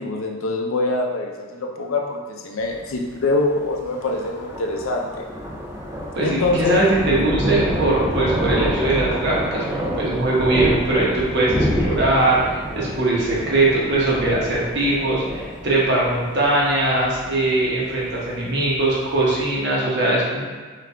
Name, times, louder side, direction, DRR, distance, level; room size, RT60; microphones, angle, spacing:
voice 1, 0.0-5.3 6.2-6.8, left 2 dB, 65° left, 1 dB, 0.5 m, -24 dB
Thunder, 2.6-19.5, equal, 10° right, 0.4 m, -28 dB
voice 2, 6.1-9.6 9.9-20.4, right 2 dB, 50° right, -5 dB, 1.0 m, -21 dB
3.7 x 3.3 x 3.4 m, 1.4 s
head